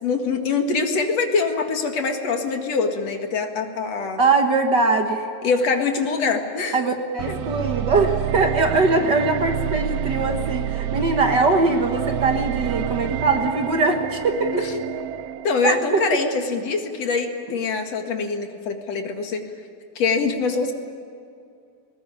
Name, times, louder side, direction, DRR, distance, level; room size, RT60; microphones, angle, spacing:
voice 1, 0.0-4.2 5.4-6.8 7.3-7.4 14.5-14.6 15.4-19.4 20.0-20.7, left 4 dB, 60° left, 4 dB, 3.0 m, -24 dB
voice 2, 4.2-5.2 6.7-14.5 15.6-16.0, right 3 dB, 45° right, 4 dB, 1.6 m, -21 dB
sound 1, 7.2-16.2, right 10 dB, 75° right, 1.6 m, -28 dB
20.5 x 20.0 x 10.0 m, 2.4 s
omnidirectional pair, 3.4 m